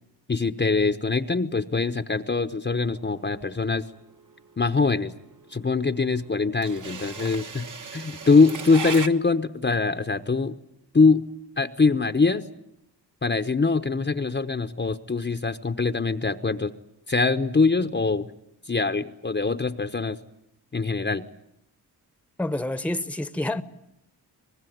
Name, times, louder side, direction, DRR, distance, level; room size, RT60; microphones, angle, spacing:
voice 1, 0.3-3.8 4.6-5.1 5.5-10.6 10.9-11.2 11.6-12.5 13.2-16.7 17.1-18.3 18.7-20.2 20.7-21.3, left 4 dB, 25° left, 1.0 m, -23 dB
sound 1, 2.8-9.1, right 5 dB, 50° right, 1.5 m, -37 dB
voice 2, 22.4-23.6, left 1 dB, 5° left, 1.1 m, -28 dB
24.5 x 20.0 x 9.4 m
cardioid pair, 65°, 41 cm